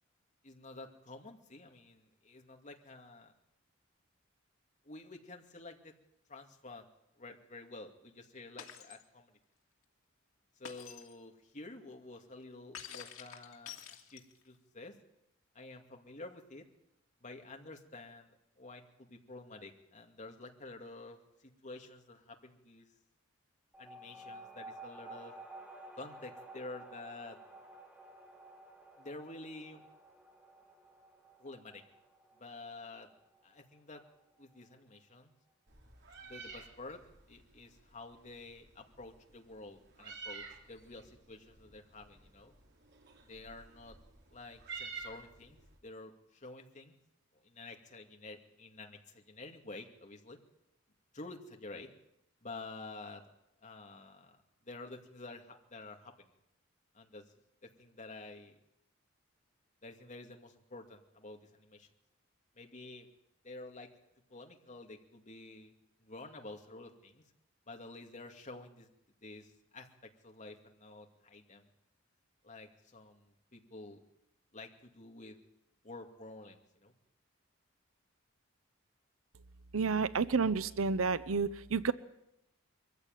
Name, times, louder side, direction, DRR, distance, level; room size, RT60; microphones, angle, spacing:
voice 1, 0.4-3.3 4.8-5.9 6.3-6.8 7.2-9.4 10.6-15.0 15.5-16.6 17.2-18.3 18.6-22.9 23.8-25.3 26.0-27.4 29.0-29.8 31.4-31.8 32.4-33.1 33.4-34.0 34.4-35.3 36.2-37.0 37.3-42.5 43.2-44.0 44.3-45.6 45.8-46.9 47.4-50.4 51.1-51.9 52.4-53.2 53.6-56.3 56.9-57.2 57.6-58.6 59.8-61.9 62.6-63.1 63.4-63.9 64.3-65.7 66.0-67.2 67.7-68.9 69.2-71.7 72.4-74.0 74.5-75.4 75.8-76.9, left 2 dB, 40° left, 3 dB, 2.5 m, -50 dB
Shatter, 8.6-9.0 10.6-11.1 12.7-14.5, left 8 dB, 90° left, 2.6 m, -48 dB
sound 1, 23.7-34.7, right 2 dB, 10° right, 2.7 m, -53 dB
Meow, 35.7-45.8, right 4 dB, 60° right, 3.4 m, -51 dB
voice 2, 79.7-81.9, right 4 dB, 85° right, 16 dB, 0.8 m, -30 dB
23.0 x 15.0 x 9.2 m, 0.84 s
head